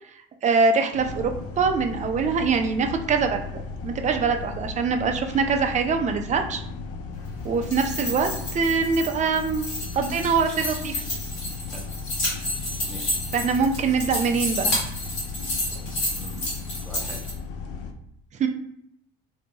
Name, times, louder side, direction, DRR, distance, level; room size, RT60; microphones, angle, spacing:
voice 1, 0.4-3.4 3.8-6.6 7.4-9.7 9.9-11.0 13.3-14.7 18.4-18.5, right 5 dB, 25° right, 5 dB, 0.4 m, -23 dB
sound 1, 0.9-17.9, left 4 dB, 55° left, 0.4 m, -36 dB
sound 2, 7.5-17.3, left 1 dB, 70° left, 1.4 m, -30 dB
voice 2, 12.8-13.2 16.0-17.2, right 1 dB, ahead, -3 dB, 0.8 m, -42 dB
2.7 x 2.1 x 2.7 m, 0.73 s
hypercardioid pair, 60°, 29 cm